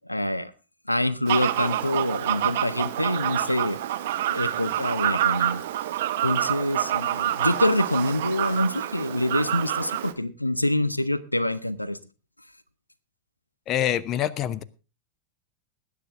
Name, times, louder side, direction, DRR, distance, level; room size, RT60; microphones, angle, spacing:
voice 1, 0.1-0.5 0.9-3.8 4.3-5.6 6.2-12.0, left 1 dB, 90° left, 17 dB, 0.8 m, -26 dB
Fowl, 1.3-10.1, right 12 dB, 55° right, 1.3 m, -27 dB
voice 2, 13.7-14.6, left 11 dB, 35° left, 18 dB, 0.8 m, -25 dB
20.0 x 9.6 x 3.5 m, 0.31 s
figure-of-eight pair, 90°, 0 cm